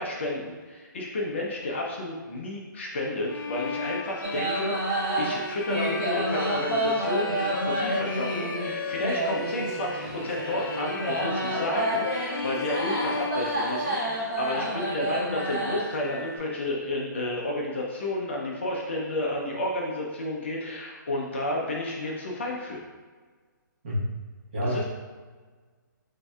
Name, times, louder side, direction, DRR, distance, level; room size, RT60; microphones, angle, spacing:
voice 1, 0.0-22.8 24.7-24.8, left 1 dB, 35° left, -2 dB, 0.6 m, -31 dB
Bowed string instrument, 3.3-14.3, left 4 dB, 75° left, 0.4 m, -35 dB
sound 1, 4.2-16.4, right 1 dB, 15° right, 0.7 m, -30 dB
voice 2, 24.5-24.8, left 1 dB, 30° right, -6 dB, 1.0 m, -28 dB
7.4 x 2.7 x 2.3 m, 1.5 s
hypercardioid pair, 175°, 11 cm